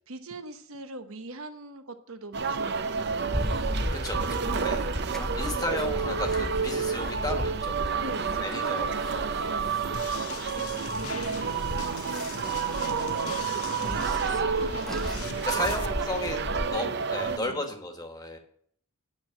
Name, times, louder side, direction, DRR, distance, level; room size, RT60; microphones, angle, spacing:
voice 1, 0.1-3.5 4.0-5.5 8.0-10.7 10.9-12.1 12.6-14.3 14.6-15.5 15.8-17.0 17.2-17.7, right 2 dB, 75° right, 8 dB, 1.1 m, -42 dB
sound 1, 2.3-17.4, right 5 dB, 50° right, 0.6 m, -30 dB
sound 2, 3.3-16.7, equal, ahead, 0.4 m, -36 dB
voice 2, 3.9-4.8 5.4-7.7 8.4-9.0 15.4-16.4 16.7-18.4, left 1 dB, 15° left, 4 dB, 1.4 m, -34 dB
sound 3, 9.9-15.9, left 7 dB, 80° left, 0.7 m, -41 dB
9.5 x 6.3 x 7.6 m, 0.64 s
head